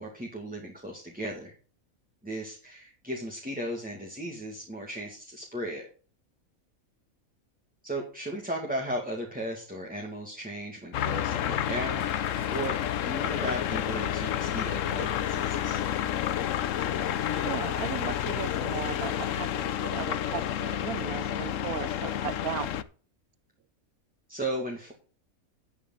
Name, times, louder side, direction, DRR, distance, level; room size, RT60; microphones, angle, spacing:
voice 1, 0.0-1.5 2.2-5.9 7.8-12.8 13.0-15.8 24.3-24.9, right 1 dB, 5° right, 2.0 m, -36 dB
sound 1, 10.9-22.8, left 10 dB, 65° left, 1.0 m, -30 dB
Car / Engine starting, 12.0-18.4, right 5 dB, 50° right, 1.3 m, -51 dB
voice 2, 17.3-22.7, right 10 dB, 85° right, 1.3 m, -37 dB
11.5 x 8.4 x 3.9 m
omnidirectional pair, 1.5 m